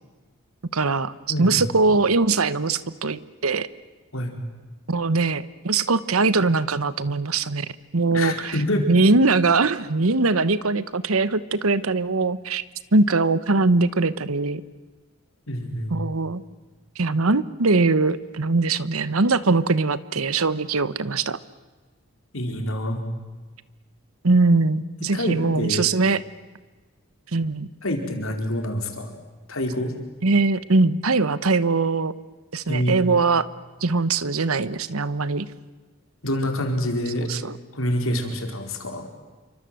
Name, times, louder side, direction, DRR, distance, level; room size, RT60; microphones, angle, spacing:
voice 1, 0.7-1.1 1.4-3.7 4.9-8.6 8.9-12.6 12.9-14.6 15.9-16.4 17.0-21.4 24.2-26.2 27.3-27.7 30.2-32.1 32.5-33.5 33.8-35.5 37.3-37.6, right 3 dB, 90° right, 16 dB, 1.1 m, -21 dB
voice 2, 1.3-1.6 4.1-4.3 8.1-8.9 15.5-16.0 22.3-23.0 25.1-25.9 27.8-29.1 29.5-29.9 32.7-33.0 36.2-37.3 37.7-39.0, left 1 dB, 75° left, 4 dB, 4.6 m, -26 dB
28.5 x 24.5 x 7.8 m, 1.3 s
head